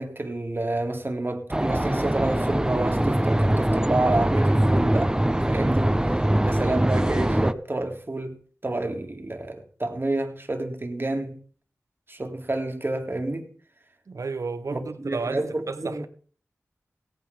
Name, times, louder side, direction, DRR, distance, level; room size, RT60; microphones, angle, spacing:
voice 1, 0.0-5.1 5.3-11.4 12.1-13.5 14.7-16.1, right 2 dB, 40° right, 2.0 m, -29 dB
sound 1, 1.5-7.5, right 1 dB, 15° right, 0.6 m, -22 dB
voice 2, 14.1-16.1, right 4 dB, 80° right, 0.9 m, -32 dB
17.0 x 9.0 x 3.5 m
cardioid pair, 45°, 5 cm